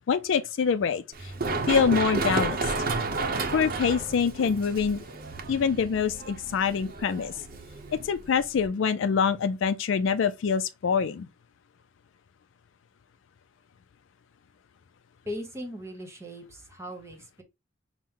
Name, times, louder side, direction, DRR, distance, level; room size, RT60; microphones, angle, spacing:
voice 1, 0.1-1.3 1.7-2.7 3.5-5.0 5.5-7.3 7.9-11.3, left 6 dB, 70° left, 0.4 m, -25 dB
Run, 1.1-8.7, right 3 dB, 45° right, 0.7 m, -32 dB
voice 2, 15.2-17.4, equal, 15° right, 1.0 m, -39 dB
5.9 x 2.1 x 3.6 m
head